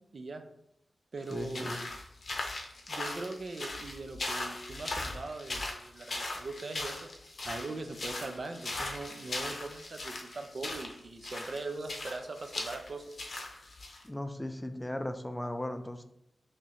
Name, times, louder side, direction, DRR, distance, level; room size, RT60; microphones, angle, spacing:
voice 1, 0.1-0.4 1.1-1.8 2.9-7.1 7.5-13.0, right 3 dB, 55° right, 6 dB, 0.4 m, -41 dB
sound 1, 1.2-14.0, left 2 dB, 55° left, 0.6 m, -39 dB
voice 2, 1.3-1.8 14.0-16.0, left 1 dB, 10° left, 7 dB, 0.3 m, -37 dB
3.1 x 2.8 x 3.8 m, 0.79 s
wide cardioid pair, 115°, 0 cm